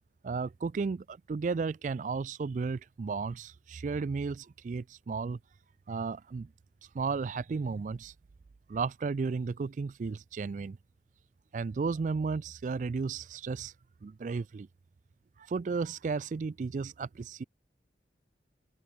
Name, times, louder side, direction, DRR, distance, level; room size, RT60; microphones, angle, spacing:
voice 1, 0.2-5.4 5.9-6.5 6.9-8.1 8.7-10.8 11.5-13.7 14.0-14.7 15.5-17.4, right 4 dB, 45° right, 0.3 m, -34 dB
open air
head